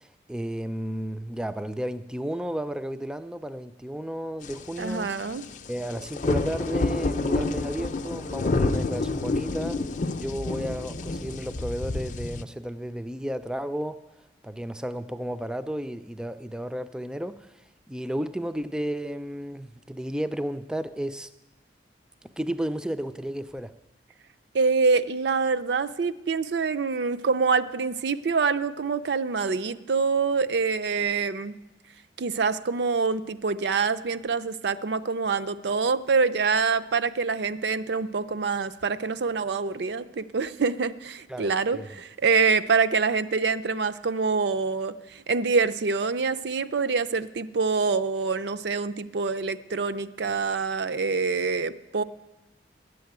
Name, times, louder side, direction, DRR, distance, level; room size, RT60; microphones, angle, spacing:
voice 1, 0.0-5.1 5.7-9.8 10.2-14.0 14.4-17.6 17.9-21.3 22.4-23.7 41.3-42.0, equal, 5° right, 11 dB, 0.3 m, -33 dB
sound 1, 4.4-12.4, left 2 dB, 45° left, 0.5 m, -29 dB
voice 2, 4.8-5.4 24.5-31.6 32.2-52.0, right 4 dB, 65° right, 14 dB, 0.5 m, -25 dB
11.0 x 7.7 x 9.3 m, 1.0 s
head